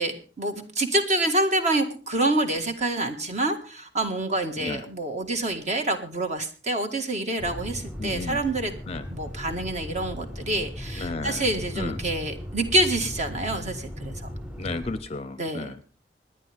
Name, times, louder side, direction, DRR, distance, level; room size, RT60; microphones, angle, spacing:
voice 1, 0.0-8.7 9.1-14.2 15.4-15.8, right 2 dB, 40° right, 6 dB, 1.8 m, -27 dB
sound 1, 7.4-15.0, equal, 5° right, 0.7 m, -37 dB
voice 2, 8.0-8.4 8.9-9.1 11.0-11.4 11.8-12.0 14.6-15.8, left 3 dB, 35° left, 14 dB, 0.6 m, -33 dB
26.0 x 10.5 x 3.5 m, 0.38 s
head